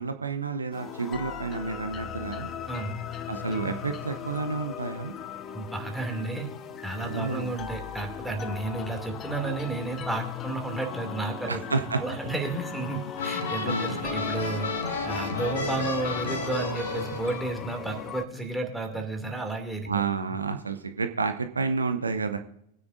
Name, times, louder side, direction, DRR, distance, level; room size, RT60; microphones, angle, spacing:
voice 1, 0.0-2.5 3.3-5.1 7.0-7.5 11.5-12.0 13.7-14.0 19.9-22.4, right 4 dB, 75° right, 8 dB, 0.8 m, -30 dB
sound 1, 0.7-18.3, left 8 dB, 30° left, 0.8 m, -38 dB
voice 2, 2.7-3.0 5.5-6.5 6.8-11.6 12.0-14.7 15.0-20.0, right 3 dB, 5° right, 2 dB, 2.5 m, -32 dB
sound 2, 13.2-17.4, left 3 dB, 65° left, 1.9 m, -32 dB
22.5 x 9.6 x 2.6 m, 0.74 s
figure-of-eight pair, 90°, 0 cm